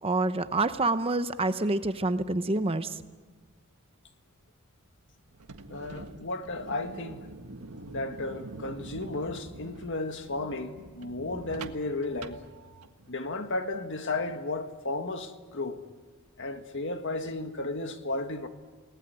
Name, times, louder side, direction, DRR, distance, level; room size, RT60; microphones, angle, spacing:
voice 1, 0.0-3.0, right 2 dB, 25° right, 0.8 m, -27 dB
sound 1, 5.3-13.1, right 2 dB, 90° right, 1.6 m, -45 dB
voice 2, 5.7-7.3 7.9-12.4 13.1-15.8 16.4-18.5, left 2 dB, 55° left, 1.8 m, -34 dB
29.5 x 19.0 x 9.8 m
head